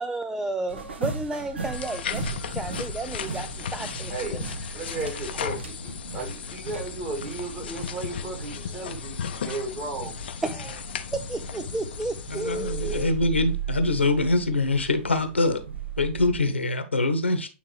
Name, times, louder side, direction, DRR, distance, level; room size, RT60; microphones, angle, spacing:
voice 1, 0.0-4.1 10.4-13.1, right 2 dB, 5° right, 0.3 m, -32 dB
sound 1, 0.7-16.4, right 7 dB, 70° right, 1.2 m, -37 dB
sound 2, 1.7-13.0, left 8 dB, 60° left, 0.6 m, -36 dB
voice 2, 4.7-10.2, right 3 dB, 30° right, 2.9 m, -35 dB
voice 3, 12.3-15.6 16.0-17.5, left 2 dB, 80° left, 1.1 m, -24 dB
8.7 x 3.5 x 3.2 m
figure-of-eight pair, 105°, 6 cm